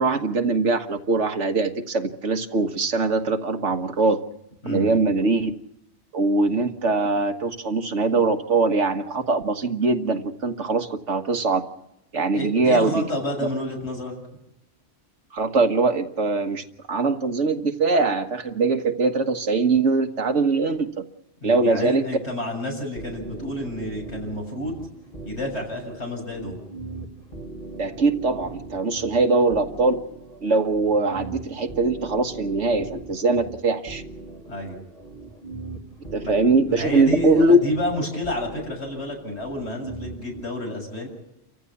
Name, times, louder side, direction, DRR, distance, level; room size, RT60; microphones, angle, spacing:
voice 1, 0.0-4.2 4.6-5.5 6.1-11.6 12.1-13.1 15.3-20.9 21.4-22.0 27.8-30.0 30.4-34.0 36.1-37.6, right 3 dB, 85° right, 6 dB, 1.8 m, -22 dB
voice 2, 4.6-5.0 12.3-14.1 21.4-24.9 25.3-26.6 34.5-34.8 36.2-36.3 36.7-41.1, left 1 dB, 65° left, 1 dB, 7.4 m, -30 dB
sound 1, 23.0-40.4, right 3 dB, 45° left, 3.5 m, -40 dB
29.5 x 15.0 x 7.2 m, 0.84 s
omnidirectional pair, 1.2 m